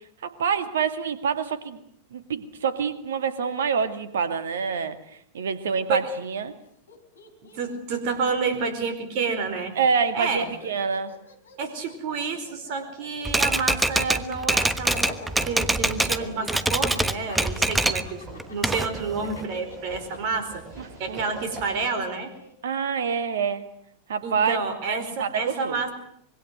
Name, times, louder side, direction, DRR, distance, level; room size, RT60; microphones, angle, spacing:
voice 1, 0.2-1.8 2.1-5.0 5.3-6.5 9.8-11.2 20.8-21.2 22.6-23.7 24.1-24.6 24.9-25.8, right 6 dB, 65° right, 11 dB, 2.3 m, -26 dB
Laughter, 6.6-6.7 6.9-9.2 9.5-22.5, left 3 dB, 70° left, 3.7 m, -45 dB
voice 2, 7.5-9.7 10.1-10.5 11.6-15.2 15.4-20.6 21.0-22.3 24.2-25.9, right 4 dB, 45° right, 9 dB, 4.7 m, -29 dB
Typewriter, 13.2-16.2 16.5-18.1 18.4-19.4, right 2 dB, 5° right, 1.3 m, -24 dB
sound 1, 15.3-21.9, right 1 dB, 25° right, 7.6 m, -44 dB
25.5 x 23.0 x 8.1 m, 0.68 s
figure-of-eight pair, 90°, 0 cm